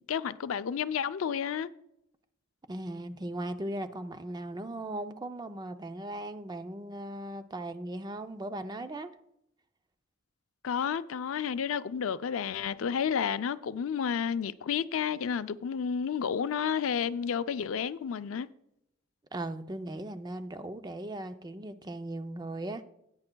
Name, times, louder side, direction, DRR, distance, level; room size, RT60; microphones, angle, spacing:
voice 1, 0.0-1.7 10.6-18.5, left 7 dB, 85° left, 0.4 m, -31 dB
voice 2, 2.7-9.1 19.3-22.8, right 1 dB, 20° right, 0.5 m, -38 dB
16.5 x 8.8 x 2.2 m
head